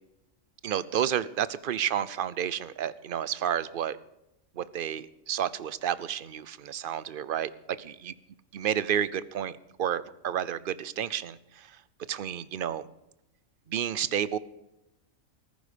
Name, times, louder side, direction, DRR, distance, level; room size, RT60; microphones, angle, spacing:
voice 1, 0.6-4.0 4.5-7.5 8.5-11.8 12.1-12.8 13.7-14.4, right 9 dB, 50° right, 17 dB, 0.7 m, -30 dB
15.0 x 14.5 x 5.1 m, 0.92 s
omnidirectional pair, 1.4 m